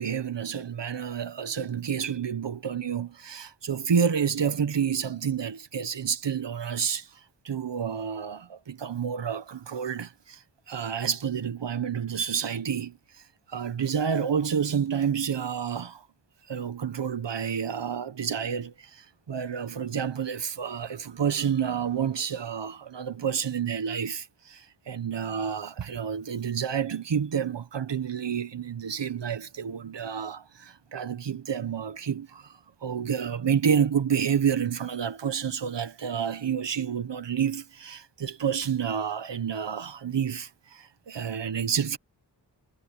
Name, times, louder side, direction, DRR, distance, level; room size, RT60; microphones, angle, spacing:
voice 1, 0.0-7.2 7.4-13.0 13.5-16.0 16.5-42.0, right 7 dB, 75° right, 1.4 m, -29 dB
wide cardioid pair, 70°, 43 cm